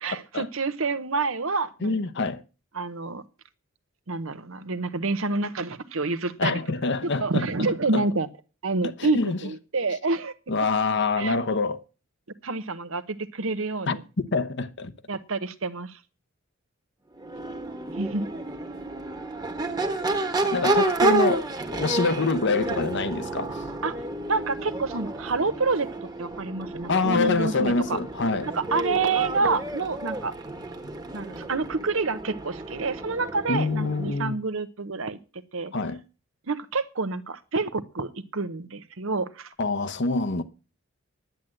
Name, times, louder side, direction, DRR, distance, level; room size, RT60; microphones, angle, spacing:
voice 1, 0.0-2.0 2.7-3.2 4.1-6.6 7.2-8.3 8.6-10.3 11.2-11.4 12.4-14.0 15.1-16.0 18.0-18.3 23.8-23.9 24.3-25.9 26.2-28.0 28.5-30.3 31.1-35.2 35.5-35.7 36.5-39.5, right 3 dB, 65° right, 1.0 m, -28 dB
voice 2, 1.8-2.4 6.4-7.5 7.9-8.1 8.8-9.4 10.5-11.8 13.9-14.0 14.3-14.9 20.5-23.6 26.9-28.5 33.5-34.4 35.7-36.0 39.6-40.4, left 3 dB, 55° left, 0.9 m, -25 dB
Crowd / Race car auto racing / Accelerating revving vroom, 17.1-34.2, right 2 dB, 20° right, 1.4 m, -30 dB
10.5 x 9.0 x 7.7 m
head